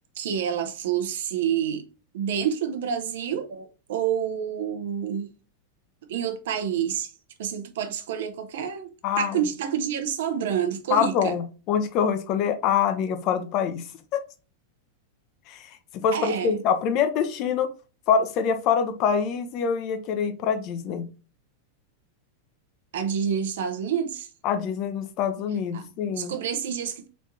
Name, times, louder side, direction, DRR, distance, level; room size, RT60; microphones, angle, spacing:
voice 1, 0.2-1.8 2.1-5.3 6.1-7.1 7.4-8.9 9.2-11.4 16.1-16.6 22.9-24.3 25.7-25.8 26.2-27.1, right 8 dB, 55° right, 0.7 m, -28 dB
voice 2, 9.0-9.4 10.9-14.2 15.5-17.7 18.1-21.1 24.4-26.3, left 7 dB, 40° left, 0.6 m, -25 dB
4.2 x 3.4 x 2.8 m
figure-of-eight pair, 90°, 0 cm